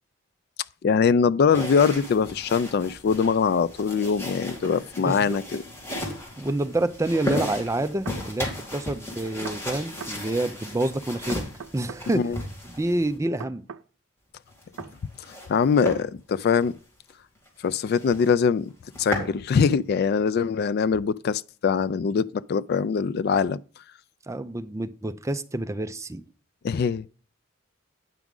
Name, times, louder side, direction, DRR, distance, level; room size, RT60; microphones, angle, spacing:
voice 1, 0.8-5.6 12.1-12.4 15.5-16.7 17.6-18.7 19.0-23.6 26.6-27.1, left 6 dB, 50° left, 0.3 m, -23 dB
sound 1, 1.5-13.2 14.5-15.5 15.8-16.0 16.5-16.7 17.1-17.2 17.5-17.6 17.9-18.3 18.7-19.3, left 1 dB, 15° left, 2.5 m, -35 dB
voice 2, 5.0-5.4 6.4-11.4 11.7-12.3 12.7-13.6 24.3-26.2, right 1 dB, 15° right, 0.4 m, -28 dB
sound 2, 6.5-6.6 7.8-8.2 9.4-10.2 11.3-12.1 13.4-13.9 14.8-15.0, right 6 dB, 85° right, 0.5 m, -40 dB
9.1 x 6.0 x 3.7 m
head